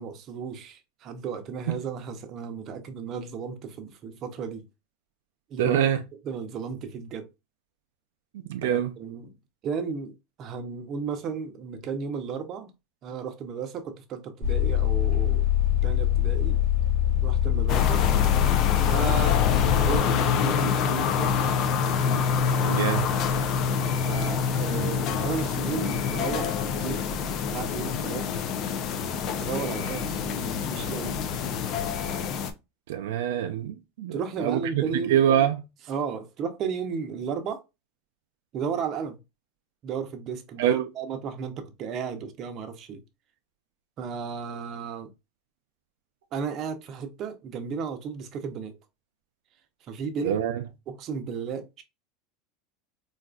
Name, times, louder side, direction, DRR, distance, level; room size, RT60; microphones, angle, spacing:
voice 1, 0.0-4.6 5.5-5.8 6.2-7.3 8.6-9.3 9.6-10.1 10.4-12.7 13.0-15.5 15.8-16.6 17.2-18.0 18.9-19.4 19.7-21.4 24.0-27.0 27.4-28.3 29.4-31.2 34.1-35.2 35.9-37.6 38.5-39.2 39.8-43.0 44.0-45.1 46.3-48.7 49.9-50.4 50.9-51.8, right 6 dB, 40° right, 0.7 m, -34 dB
voice 2, 5.6-6.0 8.5-8.9 22.6-23.1 32.9-35.6 40.6-40.9 50.2-50.6, right 10 dB, 85° right, 0.4 m, -25 dB
sound 1, 14.4-20.0, left 12 dB, 75° left, 1.9 m, -23 dB
sound 2, 17.7-32.5, left 6 dB, 50° left, 0.5 m, -26 dB
3.9 x 2.4 x 2.3 m
supercardioid pair, 130°, 0 cm